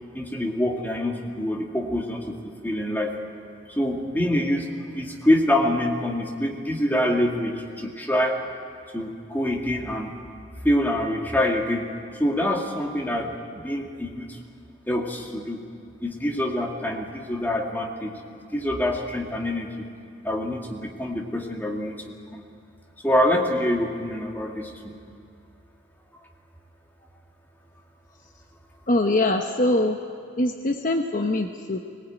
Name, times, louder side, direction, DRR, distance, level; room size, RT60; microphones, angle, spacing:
voice 1, 0.1-3.1 3.8-8.4 8.9-10.1 10.6-11.9 12.2-14.4 14.9-15.6 16.0-18.1 18.5-19.9 20.2-22.0 22.3-22.4 23.0-24.9, left 1 dB, 10° left, 0 dB, 2.1 m, -25 dB
voice 2, 28.9-30.0 30.4-31.8, left 1 dB, 40° left, 4 dB, 1.0 m, -23 dB
20.0 x 20.0 x 9.3 m, 2.4 s
head